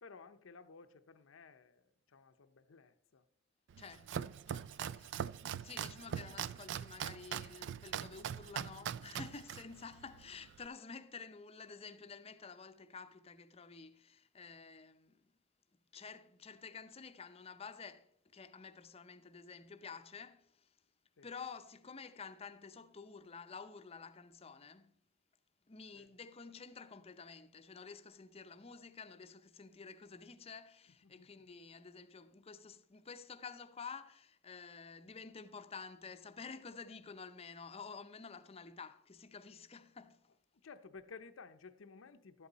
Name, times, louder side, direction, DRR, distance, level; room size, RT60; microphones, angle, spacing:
voice 1, 0.0-3.3 21.2-21.3 25.9-26.1 30.9-31.5 40.6-42.5, left 4 dB, 80° left, 0.6 m, -56 dB
Domestic sounds home sounds, 3.7-10.7, right 9 dB, 65° right, 0.3 m, -42 dB
voice 2, 3.8-5.4 5.6-15.3 15.9-20.7 21.2-24.9 25.7-40.3, left 5 dB, 30° left, 0.6 m, -51 dB
12.0 x 8.0 x 4.0 m
head